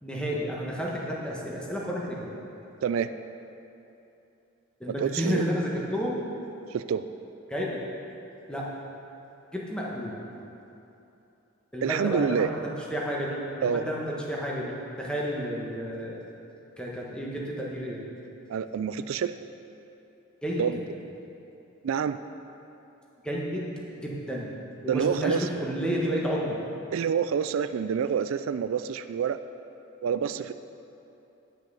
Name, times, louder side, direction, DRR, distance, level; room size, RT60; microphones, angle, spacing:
voice 1, 0.0-2.3 4.8-6.2 7.5-7.8 8.5-8.7 9.5-10.2 11.7-12.5 12.9-16.2 16.8-18.0 20.4-20.6 23.2-23.7 24.0-24.5 24.8-26.6, equal, 5° left, -4 dB, 1.3 m, -31 dB
voice 2, 5.0-5.4 6.7-7.1 11.8-12.5 13.6-13.8 18.5-19.4 20.6-20.8 21.8-22.2 24.9-25.4 26.9-29.4 30.0-30.5, right 7 dB, 80° right, 12 dB, 0.3 m, -27 dB
10.5 x 5.9 x 7.0 m, 2.9 s
head